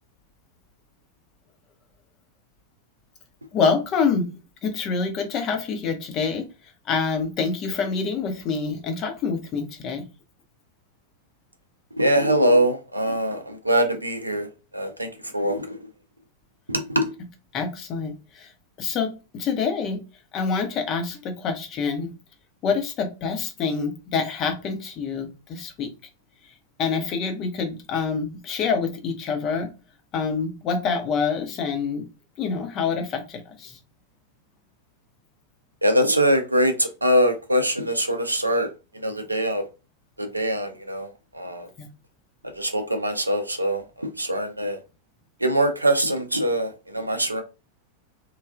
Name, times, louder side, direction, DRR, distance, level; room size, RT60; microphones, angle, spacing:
voice 1, 3.5-4.3 4.6-6.5 6.9-10.1 17.5-18.5 18.8-20.0 20.3-22.1 22.6-25.9 26.8-29.7 30.1-32.0 32.4-33.8 41.8-41.9, left 5 dB, 35° left, 0.7 m, -26 dB
voice 2, 12.0-14.5 14.7-15.1 15.3-15.8 16.7-17.1 35.8-38.7 39.0-39.6 40.2-41.1 41.3-41.7 42.6-44.8 45.4-47.4, equal, 85° right, 0.5 m, -23 dB
3.2 x 2.3 x 2.4 m
figure-of-eight pair, 90°, 0 cm